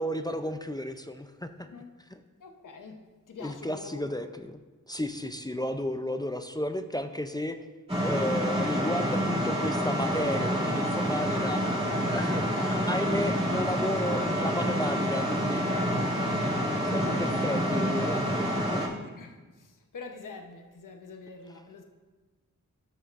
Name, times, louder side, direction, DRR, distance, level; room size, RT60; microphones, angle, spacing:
voice 1, 0.0-1.7 2.1-2.2 3.4-4.6 4.9-7.6 8.0-15.6 16.9-18.5, left 1 dB, 10° left, 7 dB, 0.4 m, -33 dB
sound 1, 7.9-18.9, equal, 20° right, 2.4 m, -28 dB
voice 2, 19.9-20.6 20.8-21.8, left 4 dB, 70° left, 5 dB, 0.8 m, -43 dB
13.5 x 6.3 x 2.5 m, 1.3 s
wide cardioid pair, 70°, 33 cm